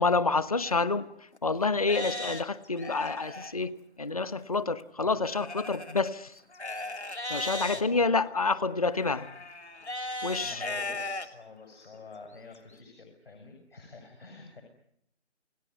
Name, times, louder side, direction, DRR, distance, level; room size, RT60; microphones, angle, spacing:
voice 1, 0.0-6.3 7.3-9.3 10.2-10.7, left 3 dB, 30° left, 17 dB, 1.1 m, -28 dB
Livestock farm animals working animals, 0.7-0.8 1.3-1.4 1.8-3.5 5.2-7.8 9.0-11.3 11.8-11.9 12.5-12.6, left 2 dB, 70° left, 3.1 m, -37 dB
voice 2, 7.7-8.2 10.4-14.6, left 4 dB, 55° left, 4 dB, 6.9 m, -48 dB
29.5 x 18.5 x 9.6 m, 0.73 s
figure-of-eight pair, 160°, 34 cm